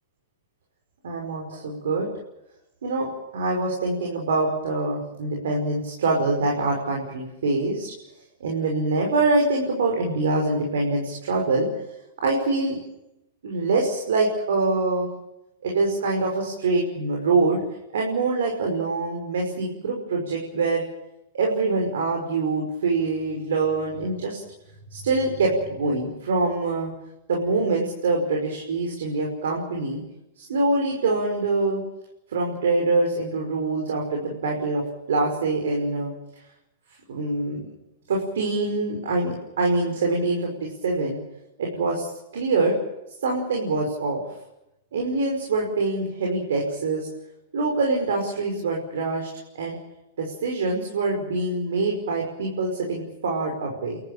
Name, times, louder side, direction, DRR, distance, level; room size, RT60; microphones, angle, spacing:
voice 1, 1.0-2.1 2.8-7.9 8.4-11.7 12.2-12.8 13.4-15.1 15.6-17.6 17.9-20.8 21.3-24.4 24.9-26.9 27.3-30.0 30.4-31.8 32.3-36.1 37.1-37.7 38.1-41.2 41.6-42.1 42.3-42.8 43.2-44.2 44.9-47.1 47.5-49.3 49.5-49.8 50.2-54.0, right 3 dB, 80° right, 0 dB, 5.7 m, -24 dB
29.5 x 13.5 x 9.0 m, 0.88 s
hypercardioid pair, 125°, 0 cm